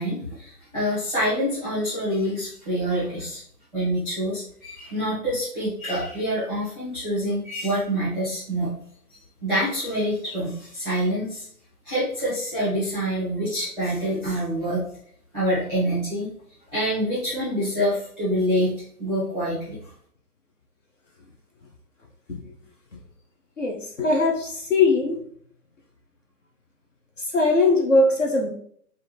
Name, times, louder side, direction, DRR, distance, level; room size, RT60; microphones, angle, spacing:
voice 1, 0.0-3.4 3.7-8.7 9.1-11.5 11.8-14.8 15.3-16.3 16.7-19.8, equal, 5° left, -12 dB, 0.9 m, -26 dB
voice 2, 23.6-25.2 27.2-28.5, left 3 dB, 50° left, 0 dB, 0.7 m, -21 dB
4.6 x 2.5 x 3.2 m, 0.62 s
hypercardioid pair, 175°, 48 cm